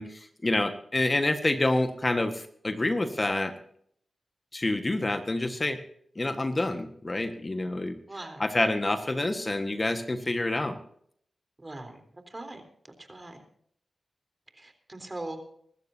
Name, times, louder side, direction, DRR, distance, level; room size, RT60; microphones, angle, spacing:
voice 1, 0.0-3.5 4.5-5.8 6.1-7.9 8.4-10.8, left 2 dB, 35° left, 7 dB, 1.5 m, -27 dB
voice 2, 8.1-8.4 11.6-12.0 12.3-12.6 13.0-13.4 14.6-15.4, right 2 dB, 30° right, 7 dB, 3.6 m, -40 dB
24.5 x 13.0 x 2.8 m, 0.64 s
cardioid pair, 45°, 0 cm